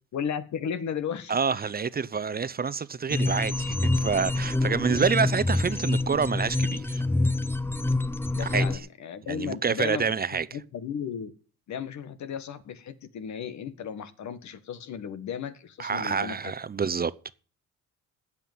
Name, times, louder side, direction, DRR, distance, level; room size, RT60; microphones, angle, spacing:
voice 1, 0.1-1.4 8.3-10.1 10.5-11.3 11.7-16.4, left 7 dB, 65° left, 1.6 m, -34 dB
voice 2, 1.3-7.0 8.4-8.6 9.3-10.5 15.8-17.1, right 5 dB, 30° right, 0.8 m, -27 dB
sound 1, 3.1-8.8, left 2 dB, 5° left, 0.9 m, -26 dB
16.0 x 5.9 x 9.5 m
cardioid pair, 90°, 30 cm